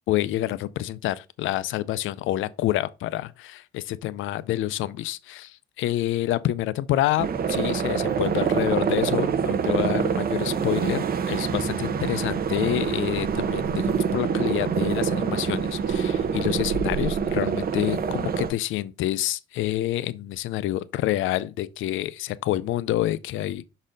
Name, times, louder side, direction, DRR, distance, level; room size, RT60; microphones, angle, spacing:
voice 1, 0.1-23.6, left 14 dB, 85° left, 0.5 m, -28 dB
sound 1, 7.2-18.5, right 6 dB, 50° right, 0.8 m, -25 dB
6.3 x 4.1 x 3.8 m
cardioid pair, 90°, 20 cm